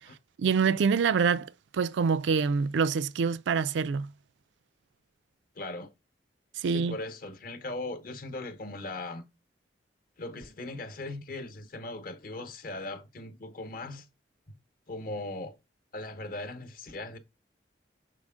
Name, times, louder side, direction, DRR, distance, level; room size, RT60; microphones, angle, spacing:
voice 1, 0.4-4.1 6.6-7.0, right 5 dB, 80° right, 0.4 m, -26 dB
voice 2, 5.5-5.9 6.6-9.2 10.2-14.1 14.5-14.6 14.9-15.6 15.9-17.2, left 2 dB, 50° left, 0.9 m, -39 dB
6.4 x 4.3 x 3.6 m
head